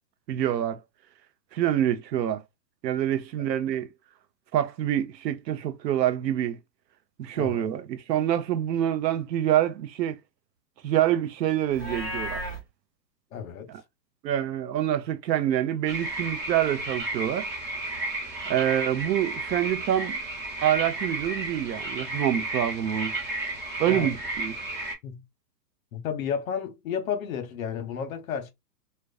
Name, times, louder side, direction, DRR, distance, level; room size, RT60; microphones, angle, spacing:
voice 1, 0.3-0.8 1.5-2.4 2.8-3.9 4.5-6.6 7.2-10.2 10.8-12.4 13.7-13.8 14.2-17.5 18.5-20.2 20.6-23.1 23.8-24.5, right 11 dB, 85° right, 0.6 m, -26 dB
voice 2, 7.3-7.7 13.3-13.7 23.9-24.1 25.0-25.2 25.9-28.5, left 7 dB, 55° left, 0.8 m, -32 dB
Livestock farm animals working animals, 11.7-12.6, equal, 10° right, 0.5 m, -33 dB
sound 1, 15.9-24.9, right 2 dB, 35° right, 1.0 m, -33 dB
2.4 x 2.2 x 2.3 m
hypercardioid pair, 155°, 49 cm